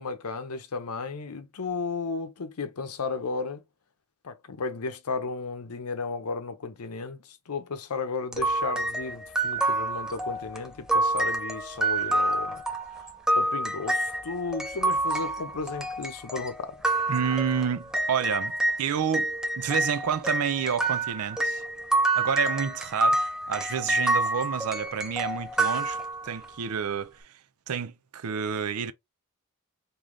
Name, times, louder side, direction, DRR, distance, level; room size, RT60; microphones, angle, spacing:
voice 1, 0.0-3.6 4.2-12.6 13.0-13.1 13.3-16.8, left 4 dB, 85° left, 0.7 m, -34 dB
sound 1, 8.3-18.8 19.1-26.5, right 2 dB, 5° right, 0.5 m, -28 dB
voice 2, 17.1-21.6 22.2-26.0 26.2-27.3 27.7-28.9, right 7 dB, 80° right, 0.5 m, -29 dB
3.1 x 2.7 x 3.7 m
head